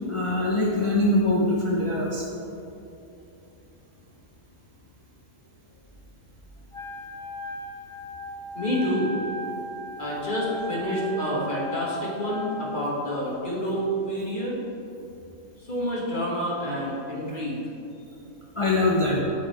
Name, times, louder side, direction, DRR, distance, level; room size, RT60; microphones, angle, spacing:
voice 1, 0.1-2.3 18.6-19.2, left 2 dB, 50° left, -5 dB, 0.3 m, -23 dB
Wind instrument woodwind instrument, 6.7-12.9, equal, 5° left, 0.6 m, -36 dB
voice 2, 8.5-9.2 10.0-14.6 15.6-17.6, equal, 35° left, -5 dB, 1.5 m, -28 dB
8.3 x 3.8 x 4.5 m, 2.8 s
omnidirectional pair, 1.5 m